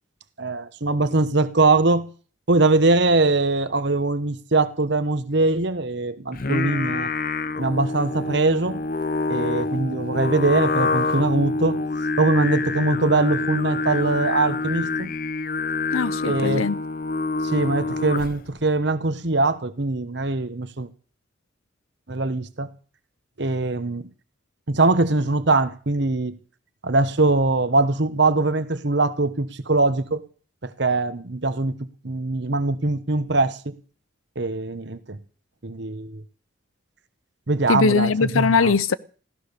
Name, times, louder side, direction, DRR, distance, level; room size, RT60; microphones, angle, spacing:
voice 1, 0.4-2.1 2.5-7.1 7.6-8.8 9.3-11.8 12.2-15.1 16.2-16.7 17.4-20.9 22.1-22.7 23.4-24.1 24.7-26.3 26.8-30.2 30.6-31.7 32.0-33.7 34.4-35.2 35.6-36.2 37.5-38.7, right 2 dB, 55° right, 1.1 m, -22 dB
Singing, 6.3-18.5, left 3 dB, 45° left, 0.7 m, -26 dB
voice 2, 15.9-16.8 37.7-39.0, left 5 dB, 85° left, 0.7 m, -20 dB
15.0 x 13.5 x 6.8 m
head